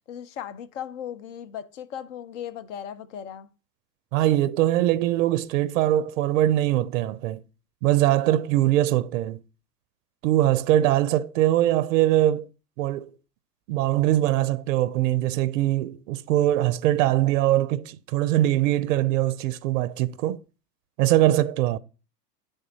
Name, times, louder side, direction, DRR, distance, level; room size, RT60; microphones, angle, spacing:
voice 1, 0.1-3.5, left 9 dB, 50° left, 0.6 m, -37 dB
voice 2, 4.1-7.4 7.8-9.4 10.2-12.5 12.8-13.1 13.7-20.4 21.0-21.8, right 14 dB, 55° right, 0.5 m, -22 dB
10.5 x 3.5 x 2.7 m
hypercardioid pair, 100°, 49 cm